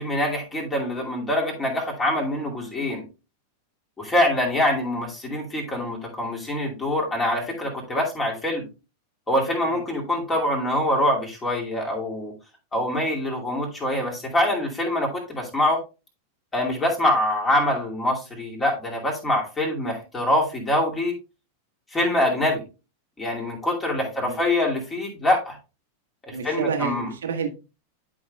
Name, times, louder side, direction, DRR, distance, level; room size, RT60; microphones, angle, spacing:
voice 1, 0.0-3.0 4.0-8.7 9.3-12.3 12.7-15.8 16.5-21.1 21.9-22.6 23.2-25.6 26.3-27.1, left 1 dB, 15° left, 2.5 m, -24 dB
voice 2, 24.0-24.4 26.3-27.5, right 6 dB, 65° right, 1.3 m, -30 dB
11.5 x 5.0 x 2.3 m
figure-of-eight pair, 90°, 0 cm